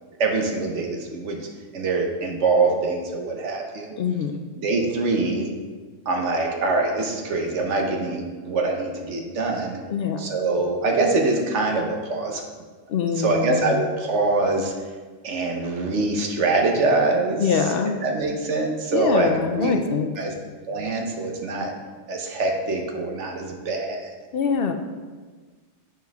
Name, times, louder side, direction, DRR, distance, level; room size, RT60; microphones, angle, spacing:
voice 1, 0.2-1.4 1.7-3.9 4.6-5.5 6.1-9.8 10.2-12.4 13.1-14.7 15.2-17.7 18.0-19.8 20.2-20.3 20.7-21.7 22.1-24.1, right 3 dB, 85° right, 2 dB, 1.3 m, -24 dB
voice 2, 4.0-4.3 9.9-10.3 12.9-13.6 17.4-18.0 18.9-20.1 24.3-24.7, left 6 dB, 65° left, 5 dB, 0.7 m, -24 dB
8.7 x 4.5 x 3.5 m, 1.4 s
omnidirectional pair, 1.2 m